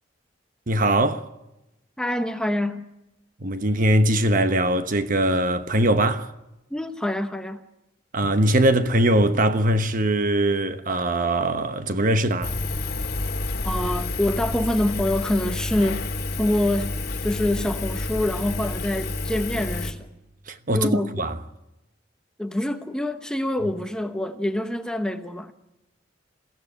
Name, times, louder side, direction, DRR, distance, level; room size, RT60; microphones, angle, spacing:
voice 1, 0.7-1.3 3.4-6.3 8.1-12.6 20.5-21.4, right 1 dB, 45° right, 1.1 m, -21 dB
voice 2, 2.0-2.8 6.7-7.6 13.6-16.1 16.4-17.0 17.2-20.0 20.7-21.1 22.4-25.5, left 1 dB, 5° left, 0.9 m, -25 dB
Engine, 12.4-19.9, left 2 dB, 55° left, 2.3 m, -29 dB
22.5 x 16.0 x 9.7 m
head